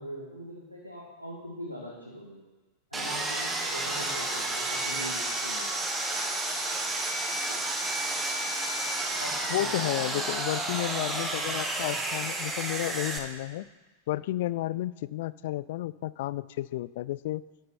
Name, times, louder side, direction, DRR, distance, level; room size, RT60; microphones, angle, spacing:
voice 1, 0.0-2.4 2.9-5.7 7.5-7.7 9.2-10.2, equal, 90° right, -3 dB, 1.7 m, -42 dB
Sawing, 2.9-13.2, right 2 dB, 15° right, 1.7 m, -31 dB
voice 2, 9.5-13.7 14.1-17.4, left 15 dB, 55° left, 18 dB, 0.3 m, -32 dB
12.0 x 9.9 x 4.3 m, 1.2 s
figure-of-eight pair, 90°, 0 cm